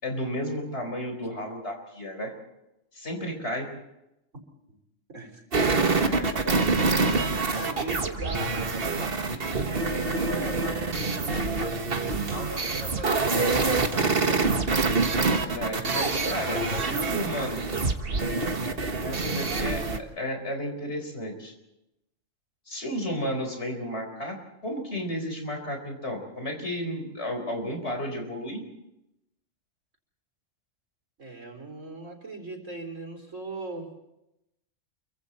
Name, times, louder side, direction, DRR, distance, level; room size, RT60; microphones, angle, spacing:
voice 1, 0.0-2.3 2.9-3.7 5.9-6.3 15.3-17.6 19.0-21.5 22.7-24.4 24.6-28.6, equal, 60° left, 4 dB, 4.7 m, -33 dB
voice 2, 5.1-5.4 6.4-6.7 7.5-14.4 16.5-17.9 31.2-33.9, right 2 dB, 85° right, 3 dB, 4.4 m, -40 dB
sound 1, 5.5-20.0, right 3 dB, 50° right, 1.6 m, -26 dB
28.5 x 24.0 x 4.3 m, 0.89 s
omnidirectional pair, 1.3 m